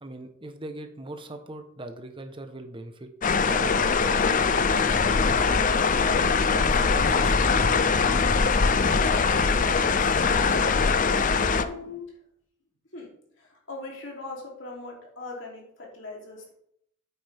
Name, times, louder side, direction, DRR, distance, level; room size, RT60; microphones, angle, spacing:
voice 1, 0.0-5.7 6.4-8.2, right 1 dB, 25° right, 7 dB, 1.0 m, -40 dB
sound 1, 3.2-11.6, left 5 dB, 40° left, 0.5 m, -22 dB
sound 2, 4.4-12.0, equal, 15° left, 2.5 m, -43 dB
voice 2, 9.7-10.6 11.4-12.2 12.9-13.1 13.4-16.5, left 3 dB, 65° left, -1 dB, 3.2 m, -40 dB
9.2 x 8.7 x 3.5 m, 0.70 s
head